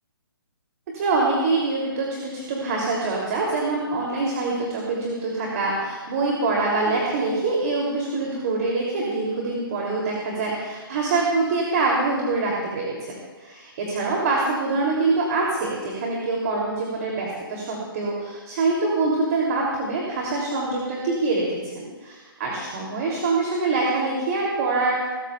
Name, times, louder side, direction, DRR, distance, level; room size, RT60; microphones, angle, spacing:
voice 1, 0.9-13.1 13.4-25.1, right 3 dB, 40° right, -2 dB, 2.7 m, -25 dB
27.0 x 13.5 x 2.3 m, 1.4 s
hypercardioid pair, 140°, 13 cm